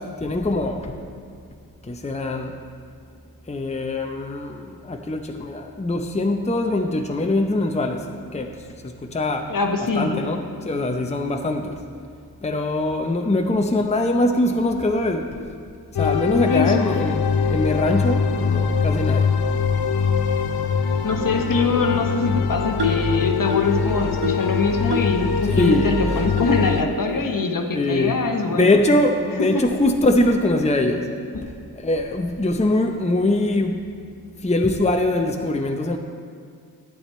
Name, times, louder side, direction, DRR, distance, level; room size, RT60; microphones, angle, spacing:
voice 1, 0.2-1.0 1.8-2.6 3.5-9.5 10.0-11.8 12.4-15.4 15.9-19.3 25.4-26.2 27.7-28.2 28.5-31.1 31.4-33.8 34.4-36.0, left 2 dB, 15° left, 4 dB, 0.7 m, -22 dB
voice 2, 9.5-10.2 16.4-17.0 21.0-28.8 29.4-29.6 31.3-31.5, left 4 dB, 60° left, 3 dB, 1.1 m, -23 dB
sound 1, 16.0-26.8, left 5 dB, 75° left, 0.6 m, -23 dB
sound 2, 22.8-23.1 23.5-23.8 24.2-24.5 24.9-25.2 25.6-25.7 26.4-26.5 27.1-27.2 27.9-28.0 28.6-28.8, left 3 dB, 90° right, 1.1 m, -27 dB
11.5 x 7.8 x 4.2 m, 2.1 s
cardioid pair, 45°, 38 cm